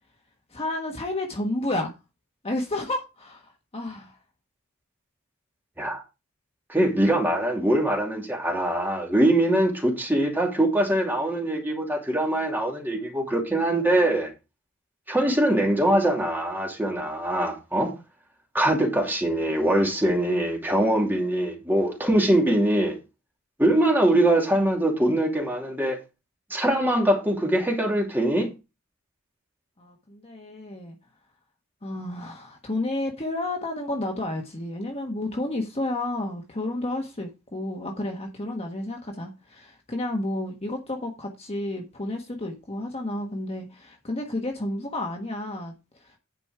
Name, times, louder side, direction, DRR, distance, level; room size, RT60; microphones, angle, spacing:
voice 1, 0.5-1.9 2.4-4.2 29.8-31.0 31.8-46.2, left 1 dB, 30° left, 1.3 m, -31 dB
voice 2, 6.7-14.3 15.1-17.9 18.5-22.9 23.6-26.0 26.5-28.5, right 1 dB, 10° right, 2.8 m, -23 dB
10.5 x 5.2 x 4.8 m
head